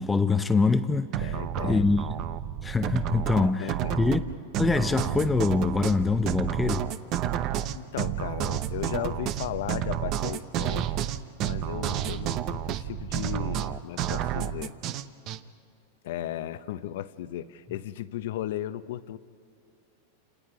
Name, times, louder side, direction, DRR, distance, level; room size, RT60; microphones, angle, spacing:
voice 1, 0.0-1.3 1.6-2.1 2.6-4.2 4.6-6.9 10.8-10.9, left 4 dB, 10° left, 0.6 m, -24 dB
sound 1, 1.1-15.4, right 11 dB, 40° right, 0.8 m, -30 dB
voice 2, 1.2-1.9 3.6-4.0 7.7-10.9 11.4-14.8 16.0-19.2, left 12 dB, 70° left, 0.9 m, -35 dB
29.0 x 28.0 x 5.1 m
supercardioid pair, 145°, 0 cm